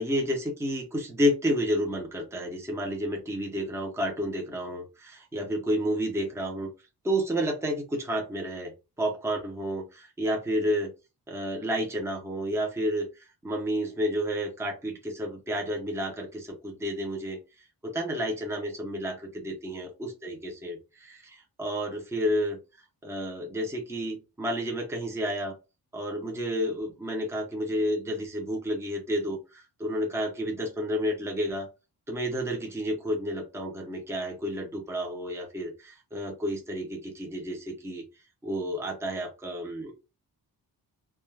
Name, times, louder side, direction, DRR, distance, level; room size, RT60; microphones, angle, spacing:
voice 1, 0.0-6.7 7.0-8.7 9.0-10.9 11.3-17.4 17.8-22.6 23.0-25.5 25.9-31.7 32.1-38.0 38.4-39.9, equal, 5° right, 2 dB, 0.5 m, -30 dB
2.3 x 2.1 x 3.1 m, 0.28 s
wide cardioid pair, 175°, 40 cm